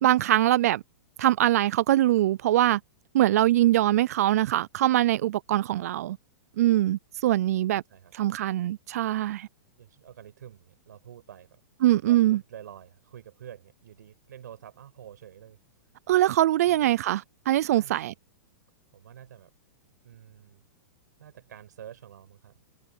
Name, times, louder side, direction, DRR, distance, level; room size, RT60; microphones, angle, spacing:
voice 1, 0.0-0.8 1.2-2.8 3.1-6.2 6.6-7.8 8.1-9.5 11.8-12.4 16.1-18.1, right 14 dB, 60° right, 0.4 m, -23 dB
voice 2, 9.8-11.6 12.1-15.6 16.6-16.9 17.8-18.1 18.9-19.5 20.0-20.6 21.2-22.6, right 10 dB, 80° right, 7.1 m, -48 dB
supercardioid pair, 160°, 9 cm